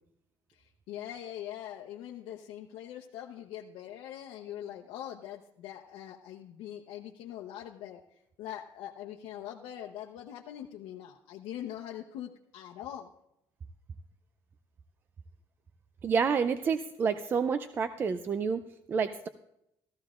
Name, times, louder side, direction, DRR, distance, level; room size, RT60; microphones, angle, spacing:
voice 1, 0.5-13.1, left 11 dB, 90° left, 0 dB, 0.8 m, -43 dB
voice 2, 16.0-18.6 18.9-19.3, right 6 dB, 25° right, 11 dB, 0.4 m, -29 dB
16.0 x 14.0 x 2.5 m, 0.81 s
cardioid pair, 175°, 8 cm